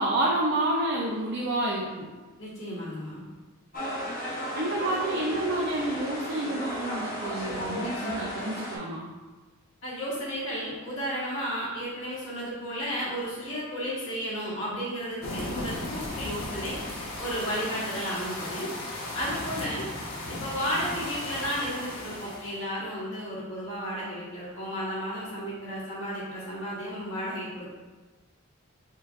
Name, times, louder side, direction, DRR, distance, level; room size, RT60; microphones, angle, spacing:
voice 1, 0.0-2.1 4.5-9.1, right 1 dB, 50° right, -3 dB, 0.5 m, -29 dB
voice 2, 2.4-3.2 9.8-16.8 17.2-18.7 19.1-19.9 20.3-27.7, equal, 60° left, -7 dB, 1.5 m, -33 dB
sound 1, 3.7-8.8, equal, 40° left, 0.7 m, -34 dB
sound 2, 15.2-22.6, left 1 dB, 80° left, 1.0 m, -36 dB
4.5 x 3.7 x 2.4 m, 1.3 s
head